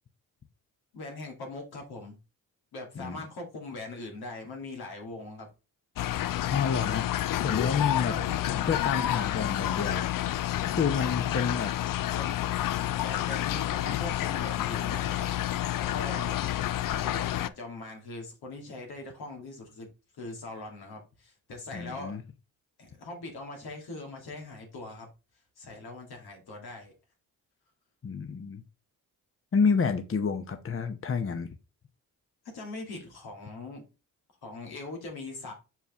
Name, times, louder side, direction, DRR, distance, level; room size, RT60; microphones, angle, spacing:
voice 1, 0.9-2.2 2.7-5.5 8.0-8.7 11.1-11.6 12.1-12.5 13.0-15.3 15.8-16.4 16.9-19.9 20.2-22.2 22.8-25.1 25.6-26.9 32.4-33.8 34.4-35.5, left 2 dB, 85° left, 2.2 m, -41 dB
sound 1, 6.0-17.5, left 13 dB, 60° left, 0.5 m, -29 dB
voice 2, 6.5-7.0 7.4-8.1 8.7-10.1 10.6-11.7 21.7-22.2 28.0-28.6 29.5-31.5, left 5 dB, 35° left, 0.8 m, -29 dB
5.7 x 4.7 x 3.5 m
supercardioid pair, 55°, 37 cm